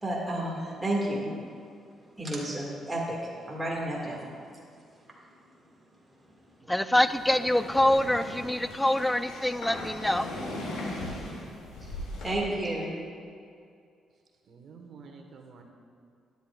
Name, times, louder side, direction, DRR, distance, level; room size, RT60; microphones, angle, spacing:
voice 1, 0.0-1.3 2.2-4.3 11.8-11.9 12.2-13.0, right 1 dB, 15° right, -4 dB, 1.7 m, -31 dB
voice 2, 6.7-10.3, left 1 dB, 5° left, 12 dB, 0.3 m, -25 dB
sound 1, 7.0-12.3, left 1 dB, 85° left, 2.1 m, -38 dB
voice 3, 14.5-15.6, right 5 dB, 60° right, 3 dB, 1.1 m, -49 dB
12.5 x 9.7 x 2.3 m, 2.3 s
cardioid pair, 90°, 0 cm